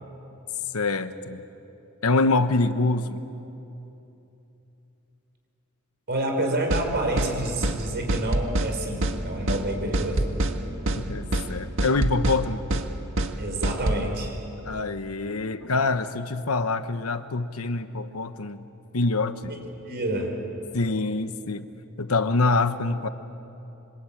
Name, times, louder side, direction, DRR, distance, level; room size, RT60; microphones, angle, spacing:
voice 1, 0.7-1.4 2.0-3.2 10.9-12.6 14.7-18.6 18.9-19.6 20.7-21.7 22.0-23.1, left 3 dB, 85° left, 10 dB, 1.1 m, -25 dB
voice 2, 6.1-10.3 13.4-14.3 19.5-19.6 19.8-20.3, right 1 dB, 50° right, 3 dB, 5.1 m, -28 dB
sound 1, 6.7-6.9 7.2-7.3 7.6-7.8 8.1-8.7 9.0-9.2 9.5-9.6 9.9-10.6 10.9-11.0 11.3-11.5 11.8-12.4 12.7-12.9 13.2-13.3 13.6-14.0, right 1 dB, 65° right, 1.7 m, -25 dB
sound 2, 8.8-13.1, right 1 dB, 90° right, 7.4 m, -41 dB
27.0 x 25.0 x 8.7 m, 3.0 s
head